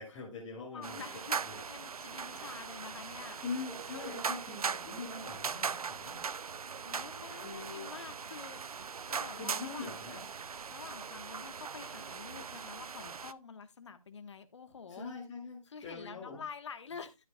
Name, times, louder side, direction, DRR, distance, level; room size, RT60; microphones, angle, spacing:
voice 1, 0.0-1.7 2.4-2.6 3.3-6.2 7.3-7.9 9.3-10.2 14.9-16.4, left 4 dB, 15° left, 2.4 m, -43 dB
voice 2, 0.7-3.4 6.8-8.6 9.1-10.0 10.7-15.0 15.7-17.2, left 6 dB, 50° left, 1.4 m, -48 dB
sound 1, 0.8-13.3, right 6 dB, 85° right, 0.6 m, -40 dB
12.5 x 7.8 x 2.3 m
hypercardioid pair, 160°, 18 cm